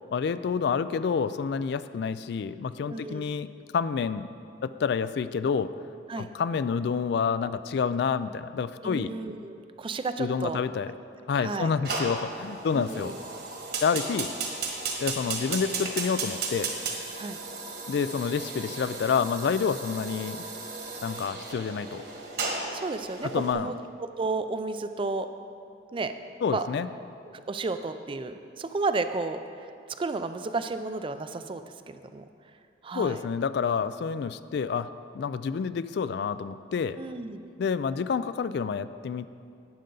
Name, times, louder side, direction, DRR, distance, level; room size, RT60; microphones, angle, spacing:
voice 1, 0.1-4.3 4.6-5.7 6.2-9.1 10.2-10.9 11.3-13.1 13.8-14.3 15.0-16.7 17.9-20.4 21.0-22.0 23.2-23.7 26.4-26.9 32.9-34.9 35.1-37.0 37.6-39.3, left 6 dB, 60° left, 13 dB, 0.3 m, -28 dB
voice 2, 2.8-3.2 6.1-6.3 8.8-10.6 11.4-11.7 12.7-13.2 17.2-17.4 22.7-25.3 25.9-26.1 26.5-26.7 27.3-29.7 30.0-32.2 32.8-33.2 37.0-37.5, right 3 dB, 30° right, 9 dB, 0.4 m, -32 dB
Fire, 11.8-23.5, right 4 dB, 55° right, 1.4 m, -35 dB
12.0 x 8.7 x 3.9 m, 2.4 s
head